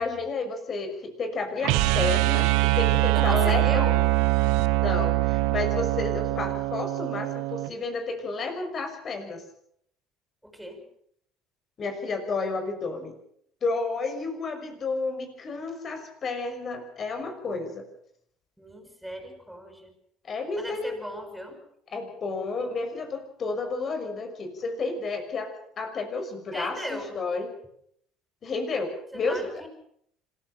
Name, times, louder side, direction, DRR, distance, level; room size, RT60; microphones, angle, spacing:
voice 1, 0.0-3.8 4.7-9.4 11.8-13.1 13.6-17.9 20.2-20.9 21.9-27.5 28.4-29.6, left 3 dB, 45° left, 6 dB, 6.1 m, -31 dB
sound 1, 1.6-7.7, right 20 dB, 75° right, 1.0 m, -23 dB
voice 2, 3.1-4.0 10.4-10.8 18.6-19.9 20.6-21.6 26.5-27.2 29.1-29.7, equal, 5° right, 5 dB, 7.6 m, -37 dB
26.0 x 14.5 x 7.5 m, 0.69 s
hypercardioid pair, 65°, 0 cm